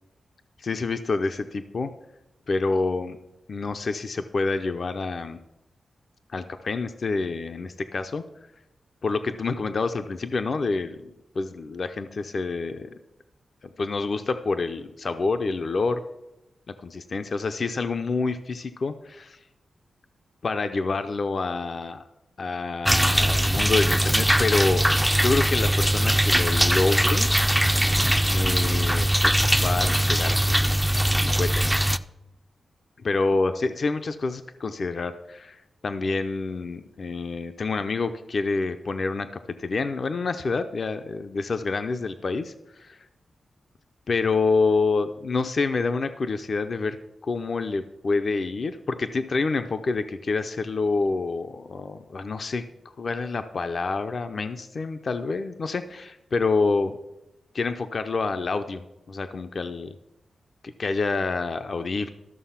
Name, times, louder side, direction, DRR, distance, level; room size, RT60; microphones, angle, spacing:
voice 1, 0.6-1.9 2.5-3.2 3.5-5.4 6.3-8.2 9.0-13.0 13.8-16.0 16.7-19.4 20.4-22.0 22.4-24.8 25.2-27.3 28.3-30.7 31.2-31.9 33.0-43.1 44.1-47.0 47.2-52.6 53.0-57.0 57.5-59.9 60.6-62.1, left 3 dB, 50° left, 8 dB, 0.6 m, -27 dB
sound 1, 22.9-32.0, right 1 dB, ahead, 0.4 m, -21 dB
13.5 x 6.6 x 5.7 m, 0.93 s
wide cardioid pair, 120°, 0 cm